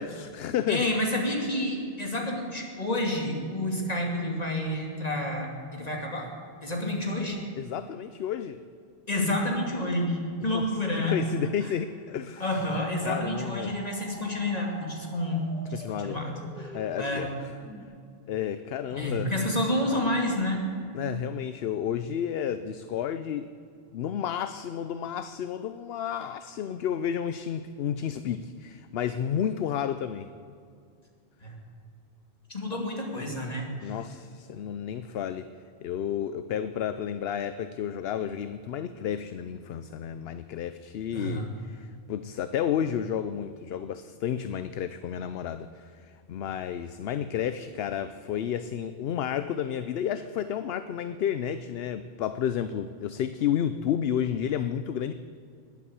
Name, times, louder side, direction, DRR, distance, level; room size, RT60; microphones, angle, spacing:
voice 1, 0.0-0.9 7.6-8.6 10.5-10.7 11.0-12.5 13.0-13.7 15.7-16.2 16.7-17.3 18.3-19.3 20.9-23.5 23.9-30.3 33.8-35.5 35.8-55.1, left 9 dB, 70° left, 12 dB, 0.8 m, -31 dB
voice 2, 0.7-6.3 6.6-7.4 9.1-11.2 12.4-15.4 15.7-17.3 18.9-20.7 31.4-31.5 32.5-34.0 41.1-41.5, left 1 dB, 40° left, 0 dB, 2.8 m, -29 dB
sound 1, 12.4-17.8, equal, 55° left, 3.6 m, -45 dB
20.0 x 8.4 x 8.1 m, 2.3 s
omnidirectional pair, 1.1 m